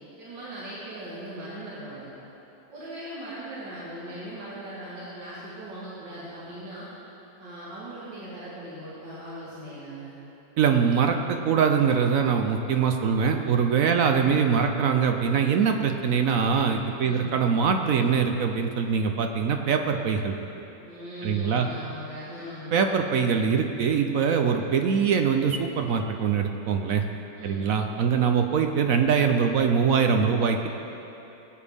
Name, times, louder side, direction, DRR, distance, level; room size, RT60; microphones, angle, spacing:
voice 1, 0.2-2.1 2.7-6.9 7.4-10.1 13.9-14.1 17.0-17.3 20.8-22.7 27.4-27.7, right 1 dB, 80° right, -10 dB, 2.6 m, -39 dB
voice 2, 10.6-20.3 21.2-21.7 22.7-27.0 27.4-30.7, right 6 dB, 65° right, 5 dB, 0.9 m, -23 dB
18.5 x 8.6 x 3.5 m, 3.0 s
omnidirectional pair, 1.9 m